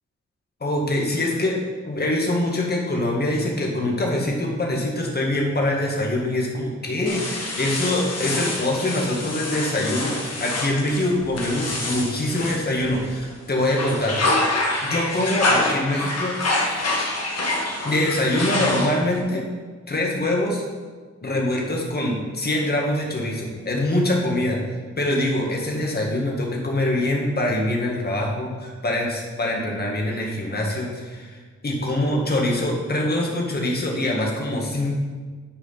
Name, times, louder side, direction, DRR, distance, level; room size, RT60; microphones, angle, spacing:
voice 1, 0.6-1.6 1.8-14.5 14.8-17.1 17.8-19.4 19.9-20.7 21.2-24.6 25.0-34.9, left 1 dB, 35° left, -1 dB, 1.8 m, -24 dB
sound 1, 7.1-13.2 13.6-19.2, left 2 dB, 60° left, 1.5 m, -26 dB
10.0 x 4.9 x 5.7 m, 1.5 s
wide cardioid pair, 120°, 29 cm